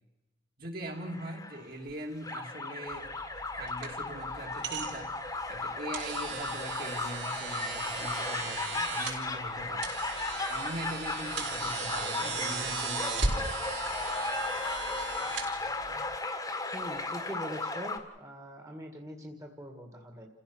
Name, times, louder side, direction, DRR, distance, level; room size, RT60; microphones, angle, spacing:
voice 1, 0.6-3.1 3.5-5.1 5.5-9.9 10.5-13.5, right 1 dB, 50° right, 1 dB, 2.9 m, -41 dB
sound 1, 0.9-1.9 2.2-18.0, left 3 dB, 15° left, 1.6 m, -35 dB
sound 2, 2.9-16.2, right 4 dB, 65° right, 4.6 m, -37 dB
voice 2, 16.7-20.3, equal, 15° right, 1 dB, 1.9 m, -43 dB
29.0 x 16.0 x 6.3 m, 1.0 s
head